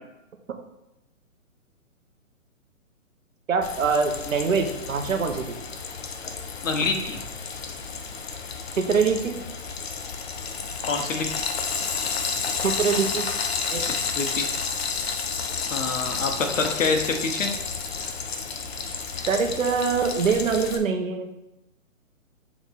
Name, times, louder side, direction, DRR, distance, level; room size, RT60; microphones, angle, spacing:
voice 1, 3.5-5.6 8.7-9.4 12.6-13.3 13.7-13.9 19.3-21.4, right 5 dB, 70° right, 5 dB, 1.1 m, -24 dB
Frying (food), 3.6-20.8, left 5 dB, 50° left, 0.8 m, -31 dB
voice 2, 6.6-7.2 10.9-11.5 13.8-14.5 15.7-17.5, left 4 dB, 65° left, 4 dB, 1.3 m, -26 dB
7.0 x 3.6 x 4.1 m, 0.95 s
hypercardioid pair, 160°, 41 cm